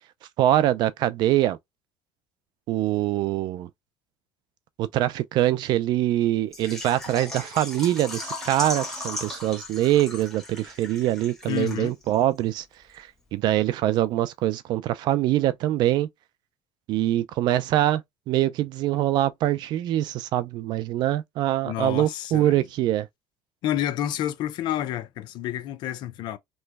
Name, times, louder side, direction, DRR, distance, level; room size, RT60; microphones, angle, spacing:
voice 1, 0.4-1.6 2.7-3.7 4.8-12.6 12.9-16.1 16.9-18.0 18.3-23.1, right 13 dB, 65° right, 0.4 m, -24 dB
Water / Liquid, 6.5-12.1 12.4-12.5 12.9-13.0, left 2 dB, 5° left, 1.3 m, -37 dB
voice 2, 11.5-11.9 21.6-22.6 23.6-26.4, left 12 dB, 65° left, 0.5 m, -29 dB
3.1 x 2.2 x 3.3 m
cardioid pair, 125°, 8 cm